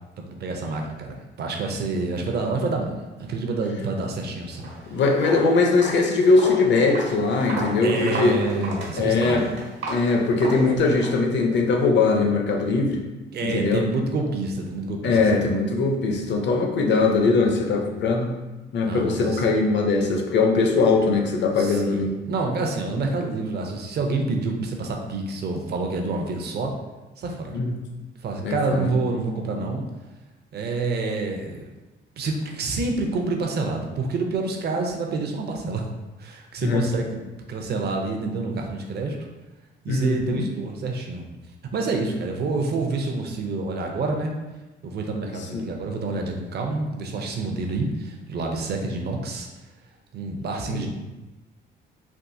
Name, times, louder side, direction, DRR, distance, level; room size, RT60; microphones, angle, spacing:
voice 1, 0.2-4.7 7.8-9.5 13.3-15.4 18.8-19.4 21.6-26.7 27.2-27.6 28.2-29.9 30.5-31.7 32.2-35.8 36.2-39.2 39.8-41.3 41.7-44.3 44.8-49.5 50.1-50.9, right 3 dB, 55° right, 2 dB, 0.6 m, -28 dB
Walk footsteps, 4.5-4.8 5.1-11.2, right 2 dB, 70° right, 1.1 m, -33 dB
voice 2, 4.9-8.4 8.9-9.4 9.9-13.0 13.5-13.8 15.0-18.3 18.7-22.1 22.9-23.0 27.5-27.8 28.4-29.0 36.6-36.8 39.9-40.4 45.5-45.6 50.7-50.9, left 3 dB, 65° left, 2 dB, 0.6 m, -21 dB
3.5 x 2.4 x 2.6 m, 1.1 s
cardioid pair, 90°, 20 cm